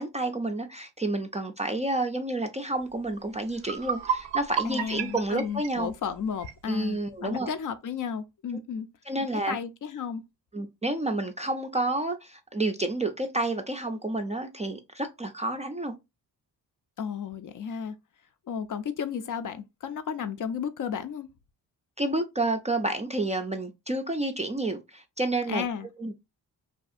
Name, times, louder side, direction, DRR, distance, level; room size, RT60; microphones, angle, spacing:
voice 1, 0.0-5.9 6.7-7.5 9.1-9.6 10.5-15.9 22.0-25.6 26.0-26.1, right 2 dB, 20° right, 0.3 m, -30 dB
sound 1, 3.1-3.2 3.5-6.6, right 7 dB, 80° right, 0.6 m, -32 dB
voice 2, 4.6-8.9 9.3-10.2 17.0-18.0 18.5-21.3 25.5-25.9, left 7 dB, 50° left, 0.4 m, -33 dB
2.7 x 2.4 x 2.4 m
cardioid pair, 60°, 43 cm